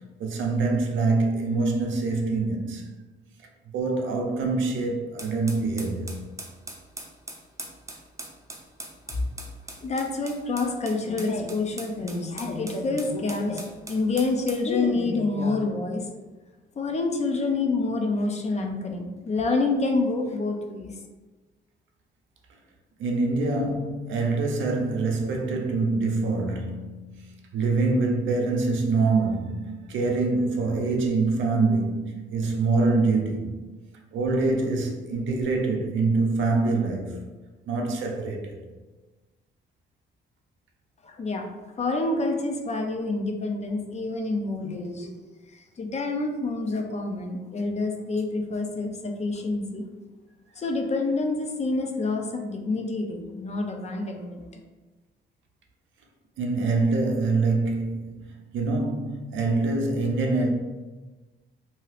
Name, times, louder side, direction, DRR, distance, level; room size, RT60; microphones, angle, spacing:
voice 1, 0.2-2.8 3.7-6.2 23.0-33.6 34.1-37.2 37.7-38.6 56.4-58.3 58.5-60.5, right 3 dB, 75° right, 0.6 m, -25 dB
sound 1, 5.2-14.7, right 2 dB, 15° right, 0.5 m, -41 dB
voice 2, 9.8-16.0 16.8-21.0 41.0-41.4 41.8-45.1 45.5-49.9 50.6-54.6, left 3 dB, 35° left, 0.5 m, -27 dB
2.8 x 2.3 x 3.3 m
cardioid pair, 90°, 20 cm